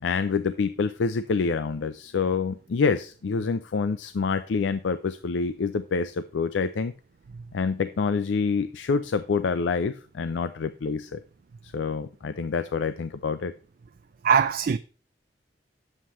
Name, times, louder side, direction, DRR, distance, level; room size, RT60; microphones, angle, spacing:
voice 1, 0.0-6.9 7.5-11.2 11.6-13.5, left 5 dB, 85° left, 0.4 m, -27 dB
voice 2, 14.2-14.8, right 6 dB, 55° right, 0.4 m, -21 dB
9.8 x 7.4 x 3.1 m
head